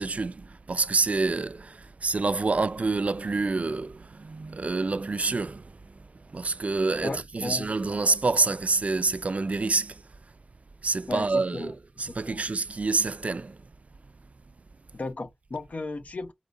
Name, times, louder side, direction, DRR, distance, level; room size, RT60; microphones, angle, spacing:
voice 1, 0.0-5.6 6.3-10.0 10.8-13.6, right 3 dB, 65° right, 0.3 m, -27 dB
voice 2, 7.0-8.0 11.1-11.7 12.0-12.5 14.9-16.3, left 3 dB, 80° left, 0.6 m, -36 dB
4.7 x 2.6 x 3.7 m
wide cardioid pair, 60°, 3 cm